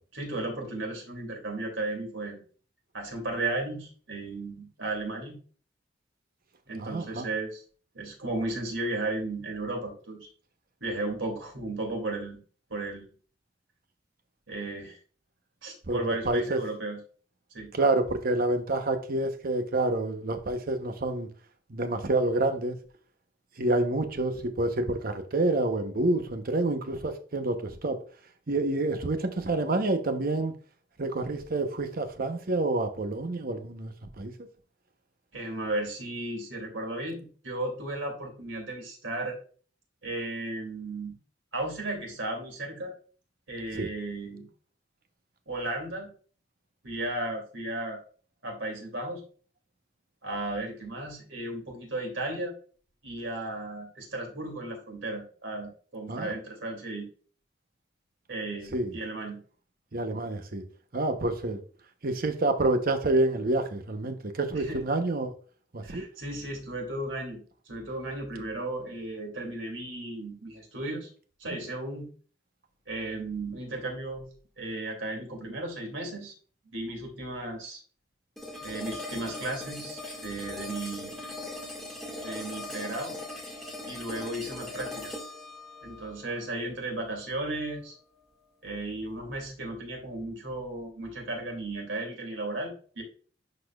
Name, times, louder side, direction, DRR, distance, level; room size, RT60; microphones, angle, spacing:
voice 1, 0.1-2.4 2.9-5.4 6.7-7.6 7.9-10.3 10.8-12.4 12.7-13.1 14.5-15.0 15.6-17.0 17.5-17.7 35.3-39.4 40.0-41.2 41.5-42.9 43.5-44.5 45.5-46.1 46.8-48.0 48.4-49.2 50.2-52.5 53.0-57.1 58.3-59.4 64.5-64.8 65.8-71.1 71.4-72.1 72.9-74.2 74.6-76.3 76.7-77.8 78.6-81.1 82.2-83.2 83.9-85.1 85.8-87.9 88.6-93.0, right 2 dB, 85° right, 2.7 m, -35 dB
voice 2, 6.8-7.3 15.9-16.6 17.7-21.3 21.7-22.8 23.6-28.0 28.5-30.5 31.0-34.3 43.7-43.9 56.1-56.3 58.7-58.9 59.9-60.6 60.9-61.6 62.0-65.3 65.7-66.0, right 2 dB, 50° right, 0.9 m, -28 dB
sound 1, 78.4-87.4, left 2 dB, ahead, 1.9 m, -40 dB
11.5 x 4.2 x 2.4 m
head